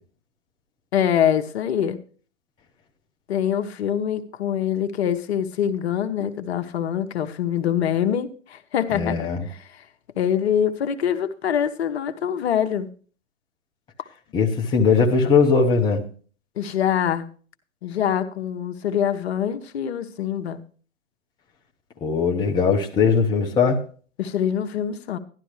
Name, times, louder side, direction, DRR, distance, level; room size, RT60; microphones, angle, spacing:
voice 1, 0.9-2.0 3.3-9.2 10.2-12.9 16.6-17.3 17.8-20.6 24.2-25.2, left 9 dB, 55° left, 1.0 m, -24 dB
voice 2, 8.9-9.4 14.3-16.0 22.0-23.8, left 5 dB, 10° left, 0.8 m, -19 dB
12.0 x 11.5 x 3.2 m
hypercardioid pair, 130°, 38 cm